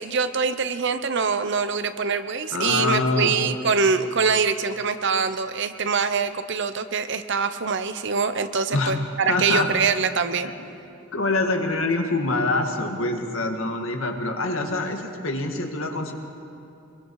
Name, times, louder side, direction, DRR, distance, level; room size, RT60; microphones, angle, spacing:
voice 1, 0.0-10.5, right 5 dB, 60° right, 10 dB, 0.9 m, -24 dB
voice 2, 2.5-3.4 8.7-9.0 9.3-9.7 10.4-10.5 11.1-16.1, left 2 dB, 80° left, 3 dB, 2.0 m, -25 dB
24.0 x 22.5 x 4.8 m, 2.7 s
head